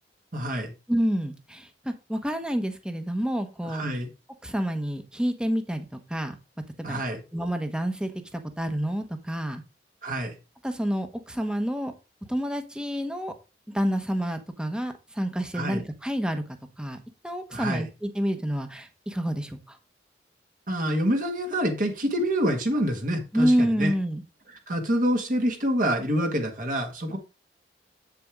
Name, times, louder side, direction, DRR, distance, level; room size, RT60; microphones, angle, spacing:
voice 1, 0.3-0.7 3.7-4.1 6.8-7.2 10.0-10.3 15.5-15.8 17.5-17.8 20.7-23.9 24.7-27.2, equal, 50° right, 1.8 m, -26 dB
voice 2, 0.9-3.8 4.4-6.3 6.8-7.0 7.3-9.6 10.6-11.9 12.3-13.3 13.7-17.0 17.2-19.8 23.3-24.2, equal, 5° right, 1.1 m, -28 dB
8.5 x 7.0 x 3.6 m
head